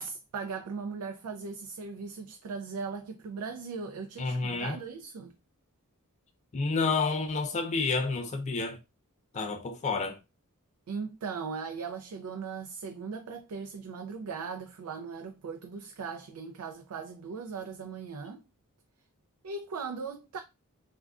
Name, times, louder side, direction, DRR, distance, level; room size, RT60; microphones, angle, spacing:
voice 1, 0.0-5.3 10.9-18.4 19.4-20.4, right 5 dB, 80° right, 0.4 m, -38 dB
voice 2, 4.2-4.8 6.5-8.8 9.3-10.2, left 4 dB, 30° left, 0.4 m, -29 dB
3.4 x 2.2 x 2.4 m
head